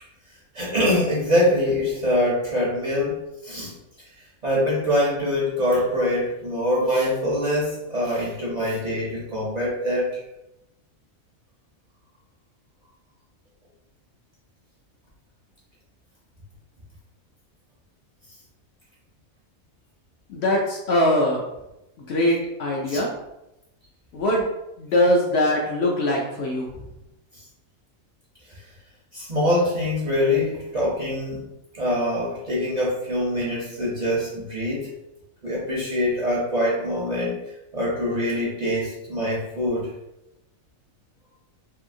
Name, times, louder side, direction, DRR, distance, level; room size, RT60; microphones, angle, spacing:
voice 1, 0.5-3.7 4.4-10.2 22.9-23.0 28.5-28.6 29.1-31.5 31.7-34.9 35.4-37.4 37.7-39.9, left 1 dB, 45° right, -6 dB, 0.6 m, -24 dB
voice 2, 20.3-21.4 22.0-23.1 24.1-24.5 24.8-26.7, left 1 dB, 65° left, -2 dB, 0.7 m, -22 dB
2.8 x 2.6 x 2.6 m, 0.90 s
omnidirectional pair, 1.4 m